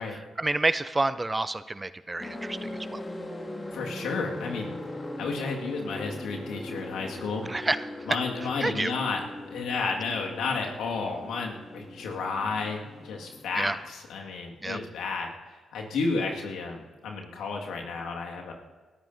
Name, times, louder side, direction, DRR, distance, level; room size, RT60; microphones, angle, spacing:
voice 1, 0.0-3.0 7.4-7.8 8.6-8.9 13.6-13.8 14.6-14.8, right 2 dB, 25° right, 14 dB, 0.6 m, -29 dB
sound 1, 2.2-13.9, left 1 dB, 25° left, 2.2 m, -40 dB
voice 2, 3.7-4.8 5.2-7.5 8.1-9.2 9.5-15.3 15.7-18.5, left 4 dB, 75° left, 0 dB, 1.9 m, -32 dB
27.0 x 13.5 x 2.7 m, 1.3 s
hypercardioid pair, 40°, 0 cm